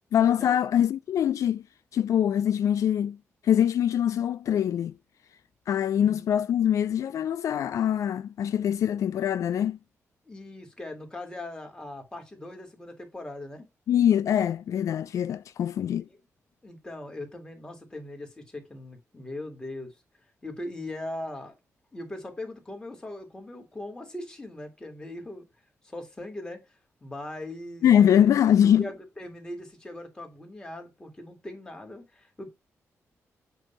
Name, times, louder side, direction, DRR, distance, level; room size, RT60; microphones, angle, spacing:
voice 1, 0.1-1.6 1.9-3.2 3.4-4.9 5.7-9.8 13.9-16.1 27.8-28.8, left 9 dB, 75° left, 0.3 m, -23 dB
voice 2, 5.9-6.3 10.3-13.7 15.9-16.2 16.6-20.0 20.4-21.5 21.9-25.4 25.8-26.6 27.0-27.9 28.1-28.3 28.8-32.5, left 1 dB, 15° left, 2.1 m, -40 dB
8.1 x 2.7 x 5.5 m
wide cardioid pair, 130°, 6 cm